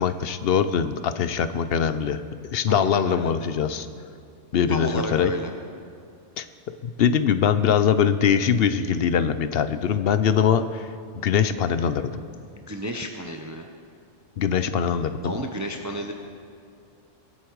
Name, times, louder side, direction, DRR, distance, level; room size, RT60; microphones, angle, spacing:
voice 1, 0.0-2.2 2.5-3.9 4.5-5.3 6.4-6.5 6.8-10.9 11.1-12.2 14.4-15.4, left 7 dB, 60° left, 11 dB, 0.8 m, -22 dB
voice 2, 2.7-3.3 4.7-5.5 12.5-13.7 15.2-16.1, equal, 15° right, 3 dB, 0.7 m, -32 dB
24.0 x 8.3 x 4.7 m, 2.4 s
omnidirectional pair, 1.3 m